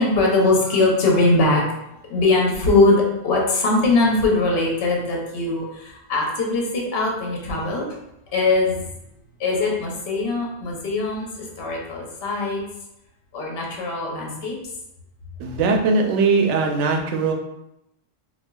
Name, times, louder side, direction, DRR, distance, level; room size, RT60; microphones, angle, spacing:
voice 1, 0.0-1.6 2.1-7.9 8.3-8.8 9.4-12.6 13.3-14.5, left 2 dB, 60° left, -2 dB, 1.0 m, -21 dB
voice 2, 15.4-17.3, right 4 dB, 80° right, 2 dB, 0.9 m, -20 dB
4.2 x 2.3 x 2.2 m, 0.85 s
omnidirectional pair, 1.2 m